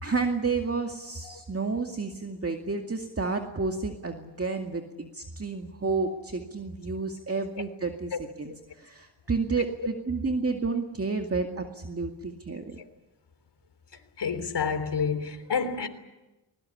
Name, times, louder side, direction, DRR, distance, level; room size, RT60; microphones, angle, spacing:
voice 1, 0.0-12.8, right 4 dB, 30° right, 2.2 m, -31 dB
voice 2, 14.2-15.9, left 6 dB, 55° left, 3.5 m, -29 dB
21.5 x 20.0 x 10.0 m
supercardioid pair, 55°, 49 cm